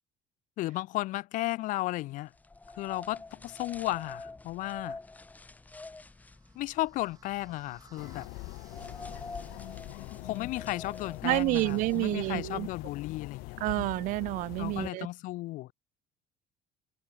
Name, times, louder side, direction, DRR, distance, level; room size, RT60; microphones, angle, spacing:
voice 1, 0.6-2.3 2.8-5.0 6.5-8.3 10.1-13.6 14.6-15.7, left 18 dB, 55° left, 0.8 m, -34 dB
sound 1, 2.3-12.3, left 3 dB, 10° left, 2.1 m, -47 dB
sound 2, 5.6-10.7, right 6 dB, 25° right, 6.8 m, -62 dB
sound 3, 8.0-14.9, left 26 dB, 80° left, 2.5 m, -43 dB
voice 2, 11.2-12.7 13.6-15.1, right 19 dB, 60° right, 0.5 m, -29 dB
cardioid pair, 160°, 15 cm